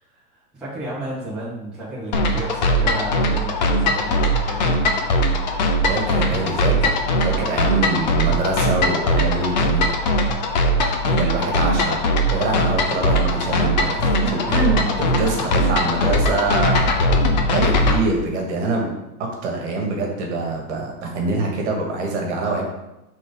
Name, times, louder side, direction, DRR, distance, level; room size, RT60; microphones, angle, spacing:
voice 1, 0.0-4.7 14.4-16.2, right 1 dB, ahead, -10 dB, 1.1 m, -33 dB
sound 1, 2.1-18.0, equal, 30° left, 0.5 m, -20 dB
voice 2, 5.9-9.8 11.0-12.0 12.3-16.9 17.5-18.9 19.2-22.6, right 2 dB, 50° right, 0 dB, 1.7 m, -24 dB
5.4 x 3.9 x 5.3 m, 0.94 s
supercardioid pair, 170°, 45 cm